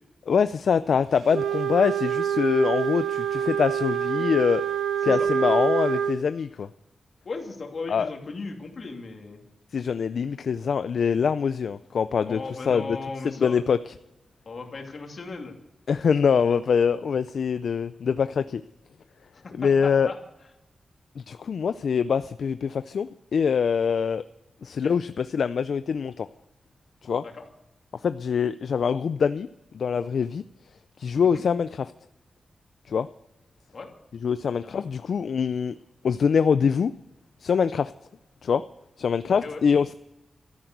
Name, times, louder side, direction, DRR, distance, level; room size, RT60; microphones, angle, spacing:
voice 1, 0.3-4.6 5.0-6.7 7.9-8.1 9.7-12.4 12.7-13.0 13.2-13.9 15.9-18.6 19.6-20.1 21.2-24.2 24.6-26.3 27.0-27.2 28.0-29.5 29.7-30.4 31.0-31.8 32.9-33.1 34.2-35.7 36.0-36.9 37.4-37.9 38.4-38.6 39.0-39.9, left 6 dB, 70° left, 13 dB, 0.4 m, -24 dB
Wind instrument woodwind instrument, 1.3-6.2, right 8 dB, 85° right, 0.9 m, -26 dB
voice 2, 7.2-9.4 12.2-13.6 14.5-15.6 19.3-20.1 24.8-24.9 27.2-27.4 31.3-31.4 33.7-33.9 34.6-34.9 39.4-39.6, left 3 dB, 50° left, 2 dB, 2.7 m, -37 dB
13.5 x 10.5 x 7.9 m, 0.97 s
wide cardioid pair, 135°, 0 cm